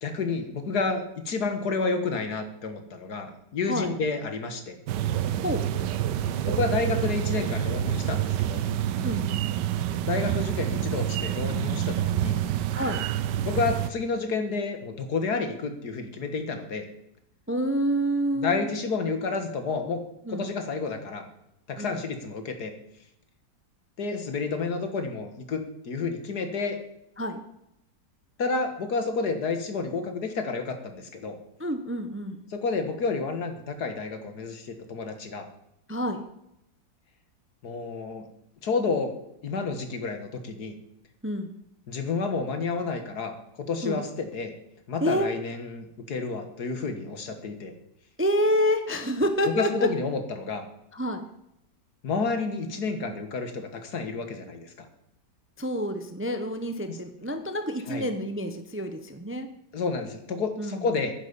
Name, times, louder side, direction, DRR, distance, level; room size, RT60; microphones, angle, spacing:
voice 1, 0.0-4.8 6.5-8.6 10.0-12.4 13.5-16.9 18.4-20.0 20.3-21.2 21.7-22.7 24.0-26.8 28.4-31.4 32.5-35.5 37.6-38.3 38.6-39.2 39.4-40.7 41.9-43.3 43.6-44.5 44.9-47.7 49.6-50.6 52.0-54.9 56.9-57.0 57.9-58.1 59.7-61.1, left 4 dB, 65° left, 7 dB, 2.1 m, -30 dB
sound 1, 4.9-13.9, right 11 dB, 80° right, 1.3 m, -27 dB
voice 2, 9.0-9.5 12.7-13.0 17.5-18.7 20.2-20.4 21.8-22.0 27.2-27.4 31.6-32.4 35.9-36.2 41.2-41.5 43.8-44.0 45.0-45.3 48.2-49.9 50.9-51.2 55.6-59.5 60.6-60.8, equal, 10° right, 8 dB, 0.8 m, -28 dB
10.5 x 10.0 x 7.0 m, 0.82 s
omnidirectional pair, 1.8 m